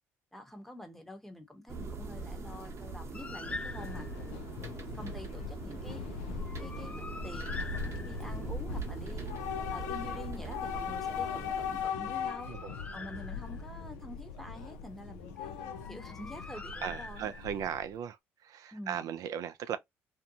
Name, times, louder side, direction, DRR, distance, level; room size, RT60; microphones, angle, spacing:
voice 1, 0.3-4.1 4.9-6.0 6.6-9.3 9.7-12.5 12.9-17.3 18.7-19.1, left 1 dB, 5° left, 0.9 m, -47 dB
sound 1, 1.7-11.9, right 3 dB, 45° right, 0.8 m, -42 dB
Train / Subway metro underground, 3.1-18.0, left 6 dB, 85° left, 0.5 m, -40 dB
Bird, 3.1-4.3 6.4-8.5 11.9-13.8 15.7-17.6, left 3 dB, 20° left, 0.4 m, -44 dB
voice 2, 16.8-18.2 18.4-19.8, right 9 dB, 60° right, 0.3 m, -37 dB
2.6 x 2.2 x 2.7 m
hypercardioid pair, 65°, 7 cm